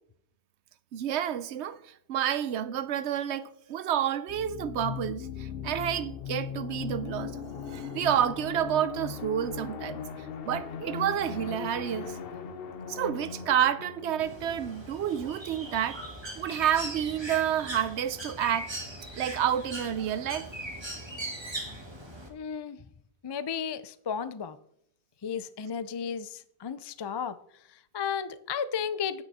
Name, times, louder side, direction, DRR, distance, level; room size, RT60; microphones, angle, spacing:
voice 1, 0.9-10.0 10.4-12.2 12.9-16.0 16.4-18.7 19.2-20.5, right 10 dB, 85° right, 0.9 m, -29 dB
sound 1, 4.3-15.8, left 7 dB, 60° left, 1.0 m, -39 dB
Bird, 14.2-22.3, right 1 dB, 25° right, 1.9 m, -40 dB
voice 2, 22.3-22.8 23.2-24.6 25.2-27.4 27.7-29.2, left 7 dB, 40° left, 0.4 m, -34 dB
9.9 x 9.1 x 4.1 m
omnidirectional pair, 1.1 m